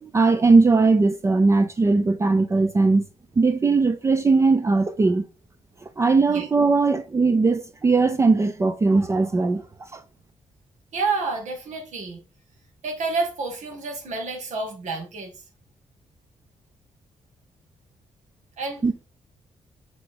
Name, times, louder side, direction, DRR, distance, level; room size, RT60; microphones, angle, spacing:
voice 1, 0.0-3.0 3.4-5.3 6.0-10.0 18.8-19.0, right 3 dB, 25° right, 0.4 m, -19 dB
voice 2, 10.9-12.2 12.8-15.3 18.6-18.8, right 3 dB, 75° right, 1.8 m, -29 dB
6.8 x 3.7 x 3.8 m
wide cardioid pair, 135°, 12 cm